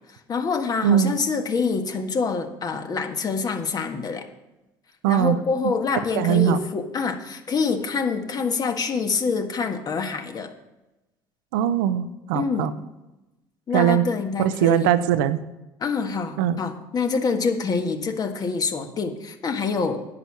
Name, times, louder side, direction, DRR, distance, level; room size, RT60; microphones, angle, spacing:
voice 1, 0.3-4.3 5.1-10.5 12.3-12.7 13.7-14.9 15.8-20.0, left 5 dB, 35° left, 6 dB, 1.5 m, -26 dB
voice 2, 0.8-1.2 5.0-5.4 6.1-6.6 11.5-12.7 13.7-14.1 14.4-15.4 16.4-16.6, right 10 dB, 75° right, 12 dB, 0.7 m, -20 dB
10.5 x 8.6 x 6.1 m, 0.99 s
hypercardioid pair, 75°, 11 cm